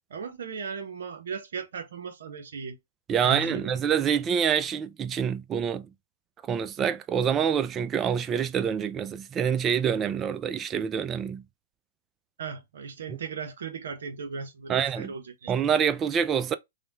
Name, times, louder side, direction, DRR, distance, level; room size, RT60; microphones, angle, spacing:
voice 1, 0.1-2.8 3.2-3.8 12.4-15.5, right 5 dB, 70° right, 0.6 m, -37 dB
voice 2, 3.1-5.9 6.5-11.4 14.7-15.1 15.5-16.5, right 7 dB, 25° right, 0.3 m, -26 dB
3.2 x 2.1 x 2.7 m
hypercardioid pair, 120°, 0 cm